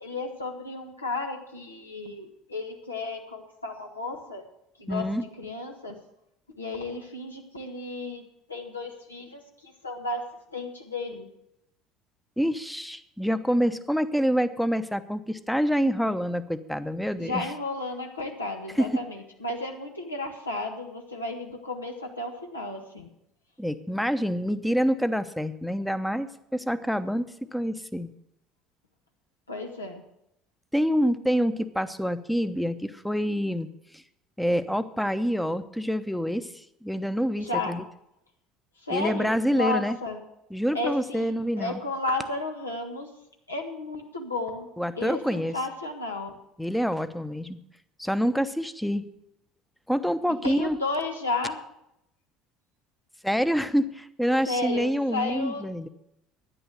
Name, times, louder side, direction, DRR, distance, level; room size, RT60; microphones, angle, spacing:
voice 1, 0.0-4.4 4.8-5.0 5.4-6.0 6.6-8.2 8.5-10.2 10.5-11.3 17.2-23.1 29.5-30.0 37.4-37.7 38.8-40.2 40.7-41.3 41.6-43.1 43.5-44.7 45.0-46.3 50.4-51.6 54.5-55.7, left 2 dB, 85° left, 2 dB, 1.5 m, -33 dB
voice 2, 4.9-5.2 12.4-17.5 18.7-18.9 23.6-28.1 30.7-33.7 33.9-34.0 34.4-37.8 38.9-40.0 40.5-41.8 44.8-45.6 46.6-47.6 48.0-49.0 49.9-50.8 53.2-55.9, equal, ahead, 12 dB, 0.8 m, -27 dB
11.0 x 9.8 x 6.6 m, 0.80 s
figure-of-eight pair, 60°, 0 cm